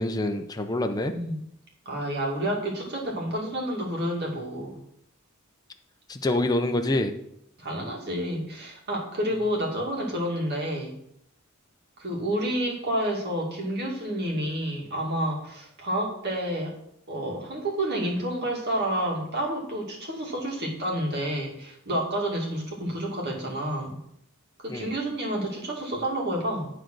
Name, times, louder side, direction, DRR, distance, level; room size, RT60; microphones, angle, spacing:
voice 1, 0.0-1.1 6.1-7.1 24.7-25.0, left 1 dB, 20° left, 5 dB, 0.6 m, -26 dB
voice 2, 1.9-4.8 7.6-11.0 12.0-16.7 17.1-24.0 24.6-26.7, right 1 dB, 55° right, -1 dB, 2.3 m, -29 dB
10.0 x 3.9 x 6.2 m, 0.73 s
head